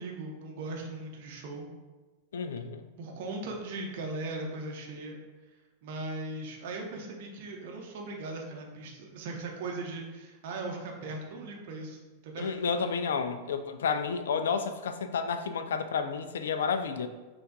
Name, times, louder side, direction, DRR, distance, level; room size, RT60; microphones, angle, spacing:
voice 1, 0.0-1.7 3.0-5.2 5.8-12.6, right 2 dB, 50° right, 1 dB, 0.7 m, -38 dB
voice 2, 2.3-2.8 12.4-17.1, left 5 dB, 65° left, 9 dB, 0.3 m, -31 dB
4.5 x 2.4 x 3.6 m, 1.2 s
figure-of-eight pair, 90°, 0 cm